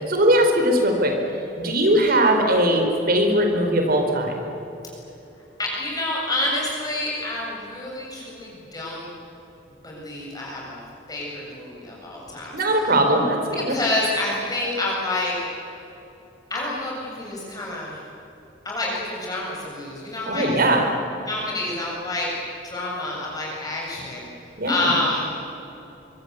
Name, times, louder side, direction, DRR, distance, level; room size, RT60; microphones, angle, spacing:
voice 1, 0.1-1.1 1.6-4.3 12.5-13.8 20.3-20.9 24.6-24.9, right 1 dB, 55° right, 4 dB, 4.5 m, -20 dB
voice 2, 5.6-9.1 9.8-10.8 11.1-12.9 13.5-15.3 16.5-18.0 18.6-20.6 21.2-22.3 22.6-24.2 24.7-25.3, left 2 dB, 20° left, -4 dB, 7.5 m, -28 dB
25.0 x 24.5 x 8.2 m, 3.0 s
head